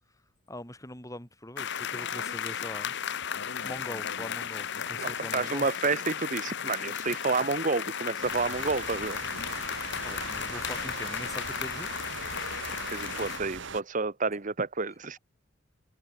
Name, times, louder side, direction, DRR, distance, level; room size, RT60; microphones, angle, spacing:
voice 1, 0.5-2.9 3.3-5.7 8.5-8.6 10.0-11.9, left 1 dB, 15° left, 5.8 m, -42 dB
sound 1, 1.6-13.4, left 8 dB, 55° left, 1.2 m, -35 dB
voice 2, 5.0-9.2 12.9-15.2, right 4 dB, 35° right, 1.0 m, -30 dB
sound 2, 8.2-13.8, right 5 dB, 60° right, 2.4 m, -40 dB
open air
head